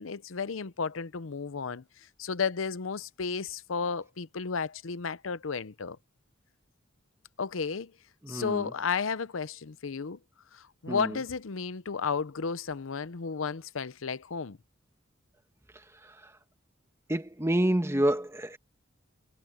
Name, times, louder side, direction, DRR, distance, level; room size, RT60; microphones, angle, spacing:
voice 1, 0.0-1.8 2.2-6.0 7.4-7.9 8.3-10.2 10.5-14.6, left 5 dB, 85° left, 0.7 m, -33 dB
voice 2, 8.2-8.7 10.9-11.2 16.0-16.3 17.1-18.6, right 1 dB, 15° right, 1.5 m, -28 dB
head